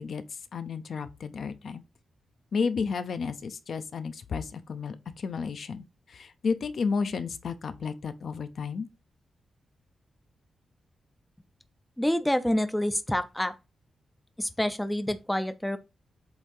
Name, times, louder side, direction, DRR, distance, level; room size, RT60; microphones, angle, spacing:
voice 1, 0.0-1.8 2.5-8.9, left 5 dB, 55° left, 0.6 m, -32 dB
voice 2, 12.0-13.5 14.4-15.8, left 1 dB, 5° left, 0.4 m, -27 dB
7.9 x 2.8 x 5.3 m
wide cardioid pair, 170°, 0 cm